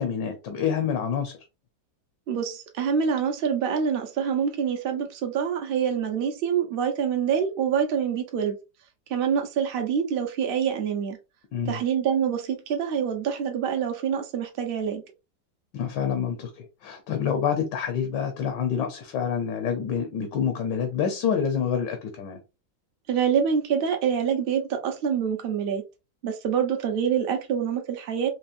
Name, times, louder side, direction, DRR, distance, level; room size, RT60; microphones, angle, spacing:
voice 1, 0.0-1.4 11.5-11.8 15.7-22.4, left 7 dB, 75° left, 1.4 m, -27 dB
voice 2, 2.3-8.6 9.1-11.2 11.7-15.0 23.1-25.8 26.2-28.3, right 7 dB, 55° right, 0.6 m, -26 dB
4.4 x 2.9 x 2.5 m
omnidirectional pair, 2.0 m